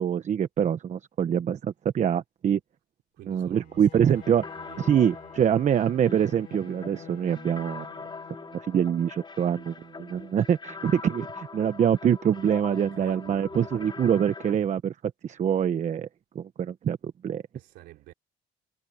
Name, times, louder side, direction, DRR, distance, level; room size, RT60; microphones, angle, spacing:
voice 1, 0.0-2.6 3.3-4.4 4.8-7.9 8.5-14.9 15.2-16.1 16.3-17.0 17.2-17.4, right 9 dB, 45° right, 1.1 m, -25 dB
voice 2, 3.1-5.5 10.1-10.2 12.7-13.7 17.5-18.1, right 16 dB, 85° right, 3.4 m, -50 dB
Bowed string instrument, 3.5-8.9, left 11 dB, 60° left, 3.2 m, -50 dB
sound 1, 4.2-14.5, left 4 dB, 25° left, 4.0 m, -42 dB
cardioid pair, 110°, 17 cm